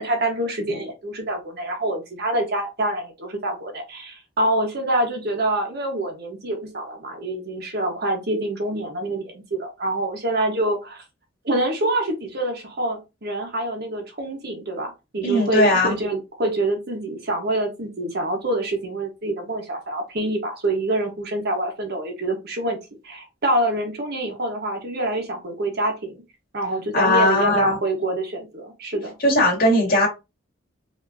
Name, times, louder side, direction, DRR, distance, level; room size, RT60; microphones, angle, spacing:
voice 1, 0.0-11.0 11.4-22.8 23.0-26.2 26.5-29.1, right 1 dB, 55° right, 1.3 m, -26 dB
voice 2, 15.2-15.9 26.9-27.8 29.2-30.1, left 1 dB, 50° left, 2.3 m, -18 dB
5.2 x 3.0 x 2.7 m
head